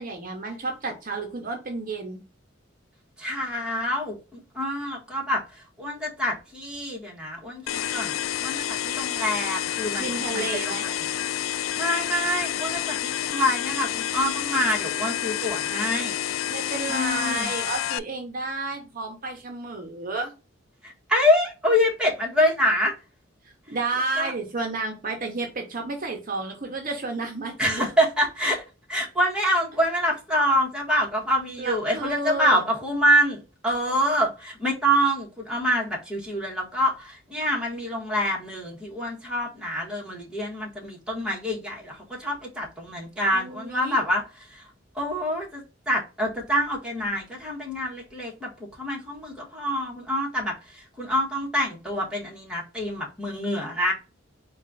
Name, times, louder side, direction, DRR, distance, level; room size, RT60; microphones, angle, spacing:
voice 1, 0.0-2.2 10.0-10.9 16.5-20.3 23.7-27.9 31.6-32.6 43.3-44.0, right 3 dB, 45° right, 0.8 m, -31 dB
voice 2, 3.2-8.2 8.4-11.0 11.7-16.2 16.9-17.5 20.8-22.9 24.2-24.3 27.6-28.6 28.9-44.7 44.9-48.5 48.8-53.9, equal, 5° right, 1.3 m, -26 dB
sound 1, 7.7-18.0, left 11 dB, 85° left, 0.3 m, -29 dB
4.2 x 2.4 x 3.8 m
head